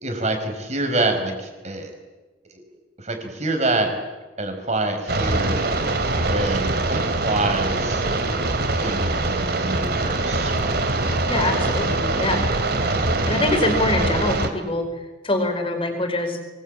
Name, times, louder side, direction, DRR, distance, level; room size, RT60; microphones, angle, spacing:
voice 1, 0.0-1.9 2.5-2.6 3.0-4.0 4.4-5.6 6.3-8.0 8.7-10.8 13.3-13.7, right 2 dB, 40° right, 5 dB, 5.1 m, -26 dB
sound 1, 5.1-14.5, right 2 dB, 60° right, 2.9 m, -23 dB
voice 2, 11.3-12.4 13.3-14.8 15.2-16.4, left 2 dB, 30° left, 5 dB, 5.1 m, -24 dB
25.5 x 20.5 x 8.9 m, 1.2 s
head